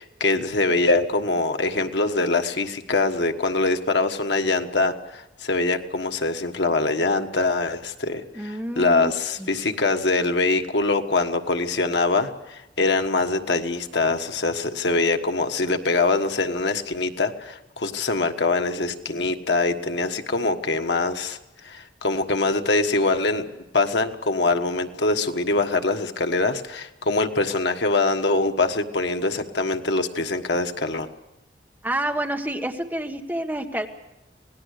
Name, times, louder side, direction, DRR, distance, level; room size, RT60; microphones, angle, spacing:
voice 1, 0.0-21.4 21.6-23.5 23.7-31.1, left 3 dB, 80° left, 6 dB, 1.4 m, -23 dB
voice 2, 8.3-9.1 9.4-9.5 31.8-33.9, right 1 dB, 10° right, 3 dB, 1.4 m, -28 dB
26.5 x 18.5 x 6.6 m, 0.92 s
head